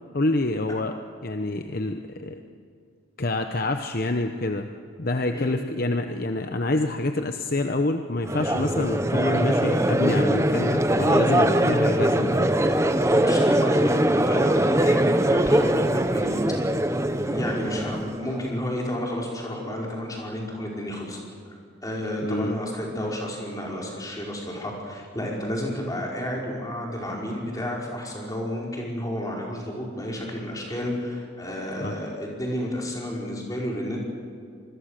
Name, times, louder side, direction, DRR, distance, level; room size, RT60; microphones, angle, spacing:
voice 1, 0.1-0.9 1.2-2.4 3.2-4.7 5.0-12.6 22.2-22.5 31.8-31.9, left 2 dB, 45° left, 6 dB, 0.9 m, -27 dB
Crowd, 8.3-18.4, right 1 dB, 15° right, 0.8 m, -22 dB
voice 2, 13.1-16.6 17.2-21.2 21.5-34.0, equal, 15° left, -2 dB, 5.1 m, -31 dB
26.5 x 21.0 x 6.7 m, 2.3 s
head